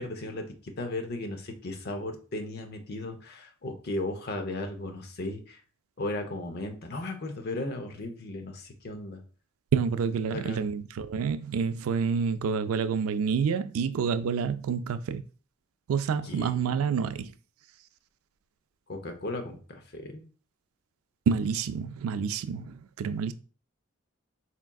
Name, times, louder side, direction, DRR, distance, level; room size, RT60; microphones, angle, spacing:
voice 1, 0.0-5.6 6.0-9.2 10.3-10.7 16.2-16.8 18.9-20.2, left 2 dB, 50° left, 0.7 m, -36 dB
voice 2, 9.7-15.2 15.9-17.3 21.3-23.3, right 6 dB, 80° right, 0.3 m, -28 dB
4.2 x 3.5 x 2.3 m
head